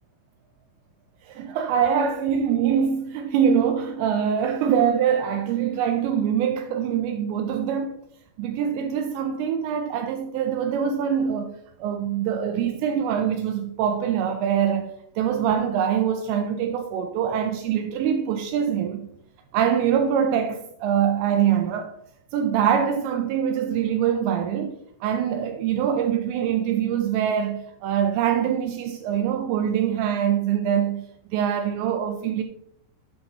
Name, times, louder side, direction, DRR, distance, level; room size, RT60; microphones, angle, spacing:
voice 1, 1.3-7.9 8.4-19.1 19.5-21.9 22.3-24.8 25.0-31.0 31.3-32.4, right 8 dB, 80° right, 2.7 m, -24 dB
8.7 x 5.8 x 3.9 m
omnidirectional pair, 5.5 m